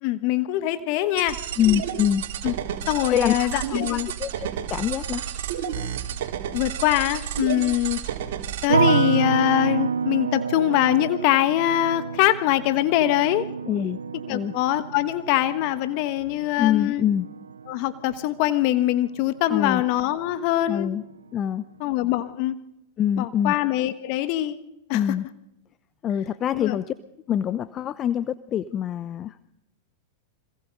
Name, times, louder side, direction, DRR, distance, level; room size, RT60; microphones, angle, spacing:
voice 1, 0.0-1.4 2.4-2.5 2.9-4.1 6.5-8.0 8.6-13.5 14.3-17.0 17.7-20.9 21.8-22.6 23.2-24.6 24.9-25.0 26.5-26.8, left 14 dB, 50° left, 12 dB, 1.3 m, -23 dB
sound 1, 1.2-8.7, right 9 dB, 65° right, 3.7 m, -31 dB
voice 2, 1.6-2.2 3.1-3.6 3.9-5.3 13.7-14.0 14.3-14.5 16.6-17.3 19.5-19.8 20.7-21.0 21.3-21.7 23.0-23.6 24.9-25.3 26.0-26.9 27.3-29.5, left 10 dB, 30° left, 15 dB, 0.8 m, -25 dB
sound 2, 8.7-19.8 20.0-20.8, right 6 dB, 85° right, 0.7 m, -29 dB
26.0 x 22.0 x 5.4 m, 0.88 s
hypercardioid pair, 105°, 0 cm